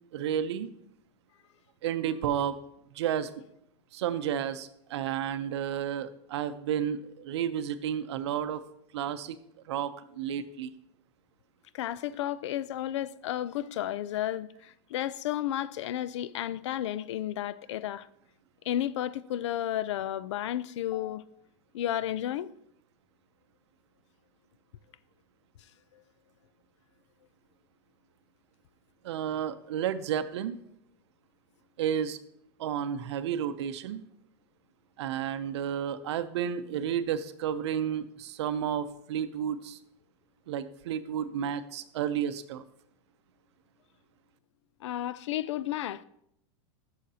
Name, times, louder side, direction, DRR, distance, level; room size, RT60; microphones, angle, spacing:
voice 1, 0.1-0.7 1.8-2.6 2.9-3.3 3.9-8.6 8.9-9.4 9.7-10.7 29.0-30.6 31.8-32.2 32.6-34.0 35.0-39.8 40.5-42.6, right 9 dB, 70° right, 0.6 m, -31 dB
voice 2, 11.7-18.1 18.6-21.2 21.7-22.5 44.8-46.0, left 12 dB, 80° left, 0.4 m, -32 dB
11.5 x 6.5 x 2.8 m
supercardioid pair, 180°, 15 cm